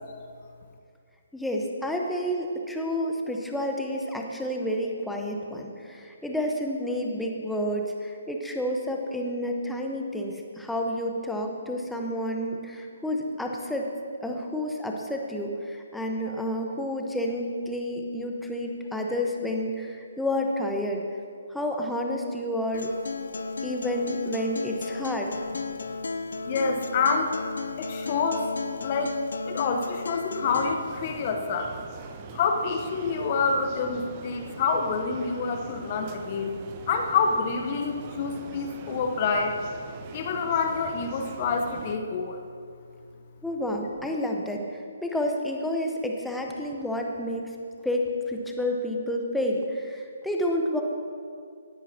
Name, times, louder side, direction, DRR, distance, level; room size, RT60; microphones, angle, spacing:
voice 1, 1.3-13.9 14.2-21.0 21.5-22.9 23.6-25.3 43.4-47.5 47.8-50.8, left 1 dB, 5° left, 1 dB, 1.0 m, -30 dB
Acoustic guitar, 22.7-30.7, left 4 dB, 70° left, 0.5 m, -34 dB
voice 2, 26.4-27.4 27.8-28.5 28.8-29.2 29.5-31.7 32.3-36.6 36.9-39.5 40.1-42.4, left 5 dB, 40° left, 4 dB, 0.9 m, -27 dB
sound 1, 30.4-42.0, right 6 dB, 30° right, 0.7 m, -43 dB
17.5 x 10.0 x 2.8 m, 2.3 s
figure-of-eight pair, 140°, 0 cm